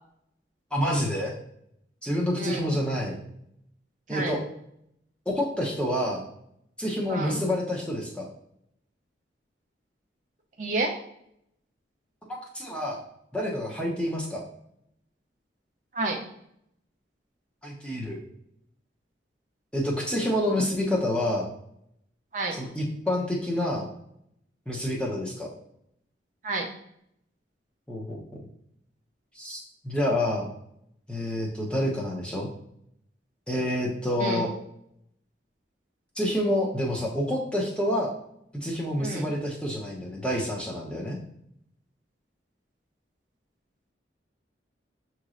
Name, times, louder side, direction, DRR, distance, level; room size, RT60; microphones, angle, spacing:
voice 1, 0.7-1.3 2.0-3.2 4.1-4.4 5.3-6.2 6.8-8.3 12.3-13.0 13.3-14.4 17.6-18.2 19.7-21.5 22.5-23.9 24.7-25.5 27.9-28.4 29.4-30.5 31.1-32.5 33.5-34.5 36.2-38.1 38.5-41.2, left 1 dB, 5° left, -3 dB, 0.7 m, -28 dB
voice 2, 2.4-2.7 4.1-4.3 7.1-7.4 10.6-10.9 15.9-16.2 22.3-22.5 26.4-26.7 34.2-34.4 39.0-39.3, right 2 dB, 45° right, 1 dB, 0.5 m, -29 dB
6.5 x 3.0 x 2.5 m, 0.74 s
head